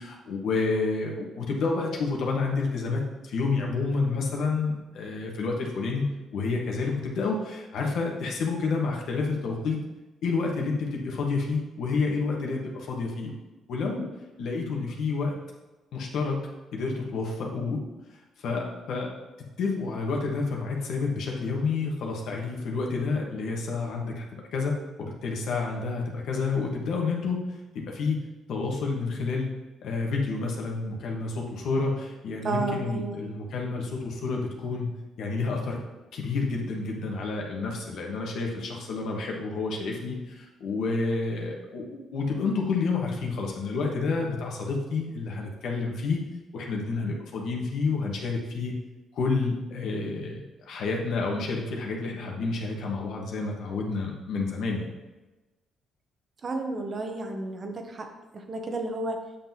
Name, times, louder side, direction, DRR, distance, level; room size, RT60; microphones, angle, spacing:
voice 1, 0.0-9.8 10.2-13.3 13.7-14.1 14.4-15.3 15.9-16.4 16.7-17.8 18.1-19.1 19.6-28.2 28.5-29.5 29.8-34.9 35.2-35.8 36.1-41.8 42.1-46.2 46.5-48.7 49.1-54.9, left 4 dB, 75° left, 0 dB, 1.5 m, -29 dB
voice 2, 32.4-33.2 56.4-58.1 58.3-59.2, right 2 dB, 40° right, 4 dB, 1.0 m, -32 dB
8.5 x 5.9 x 3.0 m, 1.1 s
cardioid pair, 90°, 0 cm